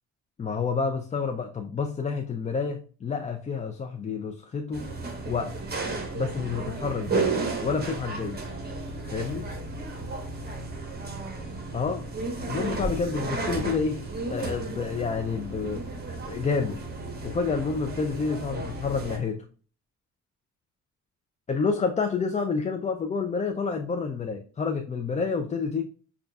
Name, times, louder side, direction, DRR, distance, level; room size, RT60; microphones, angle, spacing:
voice 1, 0.4-4.9 5.3-5.6 6.1-7.3 7.6-8.4 9.1-9.5 11.7-12.1 12.5-15.8 16.3-16.8 17.2-19.5 21.5-25.9, left 5 dB, 25° left, 0.4 m, -29 dB
sound 1, 4.7-19.2, right 3 dB, 30° right, 1.1 m, -33 dB
6.4 x 2.4 x 2.3 m
cardioid pair, 90°, 30 cm